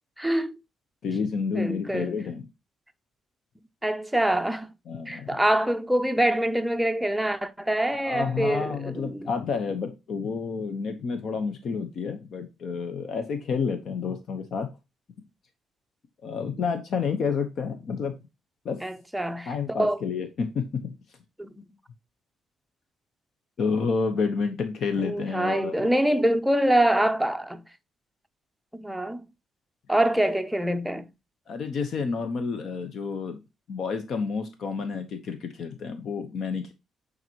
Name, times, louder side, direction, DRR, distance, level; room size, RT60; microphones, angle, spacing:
voice 1, 0.2-0.6 1.5-2.2 3.8-4.7 5.1-9.3 18.8-20.0 21.4-21.7 25.0-27.6 28.7-29.3 29.9-31.1, right 1 dB, 5° right, 0.6 m, -25 dB
voice 2, 1.0-2.4 4.9-5.4 8.0-14.7 16.2-18.2 18.6-18.8 19.5-20.9 23.6-25.9 31.5-33.4 33.7-36.7, left 5 dB, 60° left, 0.9 m, -29 dB
9.1 x 4.0 x 2.9 m
cardioid pair, 90°, 0 cm